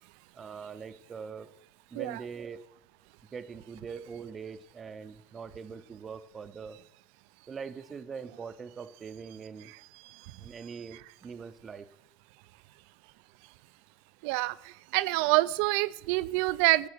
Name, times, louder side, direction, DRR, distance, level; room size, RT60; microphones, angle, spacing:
voice 1, 0.3-1.5 1.9-2.7 3.3-6.8 7.5-9.7 10.4-11.9, right 6 dB, 20° right, 14 dB, 0.6 m, -42 dB
voice 2, 14.2-14.6 14.9-16.9, right 19 dB, 70° right, 19 dB, 0.4 m, -26 dB
13.0 x 6.8 x 6.6 m, 0.88 s
cardioid pair, 155°, 0 cm